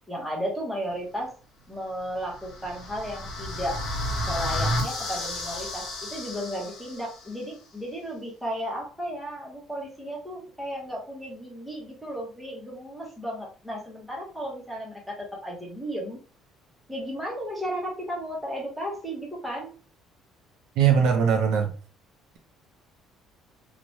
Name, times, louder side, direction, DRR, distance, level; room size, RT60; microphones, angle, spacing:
voice 1, 0.1-1.3 1.7-3.8 4.3-16.2 16.9-19.7, equal, 5° right, -3 dB, 0.8 m, -34 dB
sound 1, 2.2-7.3, left 1 dB, 55° left, 1.0 m, -32 dB
voice 2, 20.8-21.7, right 7 dB, 65° right, 3 dB, 0.6 m, -20 dB
3.1 x 2.1 x 2.6 m, 0.37 s
cardioid pair, 175°, 0 cm